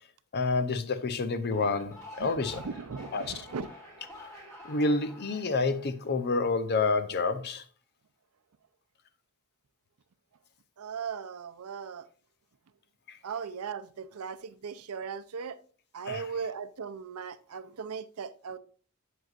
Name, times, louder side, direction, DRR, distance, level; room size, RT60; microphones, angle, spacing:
voice 1, 0.3-2.6 3.1-3.5 4.2-4.3 4.6-7.6 13.1-13.2 16.0-16.3, left 3 dB, 50° left, 0.6 m, -29 dB
sound 1, 1.4-6.7, left 1 dB, 15° left, 3.3 m, -48 dB
voice 2, 2.6-3.7 10.8-12.1 13.2-15.6 15.9-18.6, right 6 dB, 85° right, 0.5 m, -38 dB
7.8 x 7.8 x 2.4 m
head